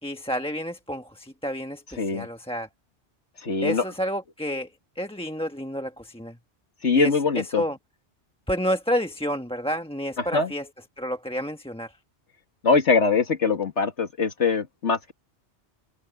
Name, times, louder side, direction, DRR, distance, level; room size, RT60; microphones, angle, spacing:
voice 1, 0.0-2.7 3.6-4.7 5.0-6.4 6.9-7.8 8.5-10.7 11.0-11.9, equal, 5° left, 1.2 m, -30 dB
voice 2, 3.4-3.8 6.8-7.6 10.3-10.5 12.6-15.1, left 4 dB, 90° left, 2.3 m, -22 dB
omnidirectional pair, 1.1 m